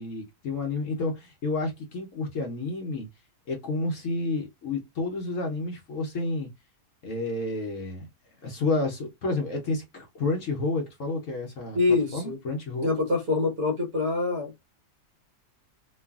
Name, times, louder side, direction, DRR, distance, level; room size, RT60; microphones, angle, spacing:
voice 1, 0.0-3.1 3.5-6.5 7.0-8.1 8.4-11.8 12.1-12.9, left 3 dB, 60° left, 0.9 m, -30 dB
voice 2, 11.7-12.4 12.8-14.5, left 3 dB, 60° right, 1.5 m, -25 dB
3.1 x 2.3 x 2.3 m
omnidirectional pair, 1.7 m